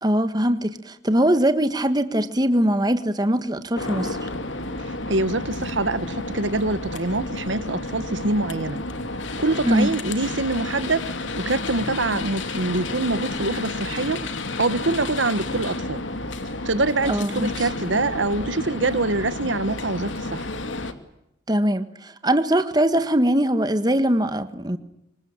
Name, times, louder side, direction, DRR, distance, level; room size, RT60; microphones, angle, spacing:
voice 1, 0.0-4.2 9.6-9.9 17.0-17.5 21.5-24.8, right 1 dB, 20° right, 1.6 m, -21 dB
sound 1, 3.7-20.9, left 2 dB, 85° left, 2.6 m, -31 dB
voice 2, 4.9-8.8 9.4-11.1 11.4-14.2 14.6-16.0 16.6-20.5, right 2 dB, 80° right, 1.5 m, -25 dB
26.0 x 25.0 x 8.9 m
head